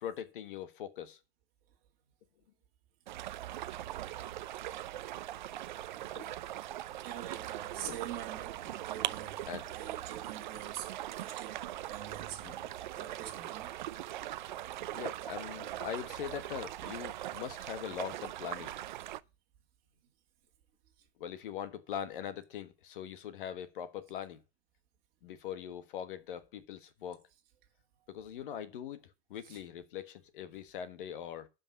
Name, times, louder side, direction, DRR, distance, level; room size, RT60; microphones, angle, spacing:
voice 1, 0.0-1.2 5.3-5.4 6.1-6.3 7.8-8.0 9.5-9.7 12.4-12.7 14.9-18.7 21.2-24.4 25.2-27.3 28.1-29.0 29.3-31.5, left 9 dB, 50° left, 1.4 m, -42 dB
sound 1, 3.1-19.2, right 13 dB, 45° right, 0.5 m, -41 dB
voice 2, 7.0-12.5 12.9-13.7 29.4-29.6, right 11 dB, 25° right, 2.4 m, -45 dB
11.0 x 5.5 x 6.1 m
supercardioid pair, 170°, 33 cm